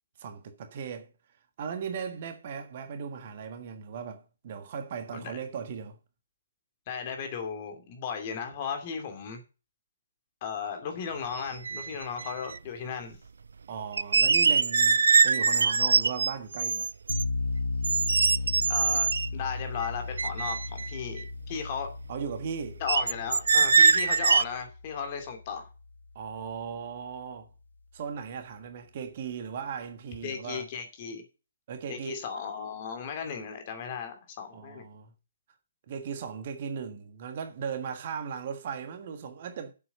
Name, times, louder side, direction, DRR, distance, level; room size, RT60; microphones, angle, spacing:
voice 1, 0.2-1.1 1.6-6.0 13.7-16.9 22.1-22.8 26.1-27.5 27.9-30.7 31.7-32.3 34.5-35.1 35.9-39.7, right 6 dB, 40° right, 1.5 m, -37 dB
voice 2, 6.9-9.4 10.4-13.2 18.7-21.9 22.8-25.7 30.2-31.2 31.9-34.8, left 6 dB, 30° left, 2.5 m, -36 dB
sound 1, 11.3-11.4 11.6-12.6 13.9-17.2 17.8-19.3 19.8-19.9 20.2-21.2 22.9-24.4, right 5 dB, 60° right, 0.4 m, -23 dB
sound 2, 17.1-26.0, left 3 dB, 75° left, 0.9 m, -35 dB
7.7 x 7.7 x 6.7 m
figure-of-eight pair, 135°, 0 cm